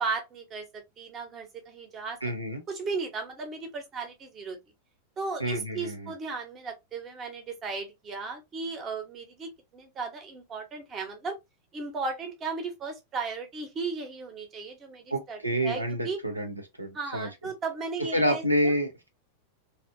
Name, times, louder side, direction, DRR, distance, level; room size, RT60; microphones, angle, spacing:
voice 1, 0.0-2.2 2.7-4.6 5.2-11.4 11.7-16.2 16.9-18.7, right 4 dB, 25° right, 0.9 m, -35 dB
voice 2, 2.2-2.6 5.4-6.1 15.1-17.3 18.0-19.1, equal, 85° right, 0.5 m, -28 dB
2.6 x 2.4 x 2.4 m
figure-of-eight pair, 90°, 0 cm